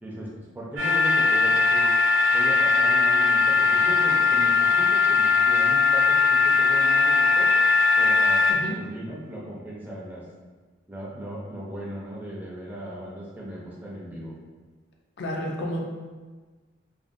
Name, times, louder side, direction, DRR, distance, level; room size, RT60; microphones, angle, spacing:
voice 1, 0.0-1.9 2.3-7.5 8.0-10.2 10.9-14.3, right 1 dB, 10° right, -5 dB, 0.4 m, -37 dB
sound 1, 0.8-8.5, left 4 dB, 90° right, 0.6 m, -20 dB
voice 2, 15.2-15.8, equal, 60° left, -1 dB, 0.4 m, -30 dB
2.6 x 2.0 x 2.4 m, 1.3 s
head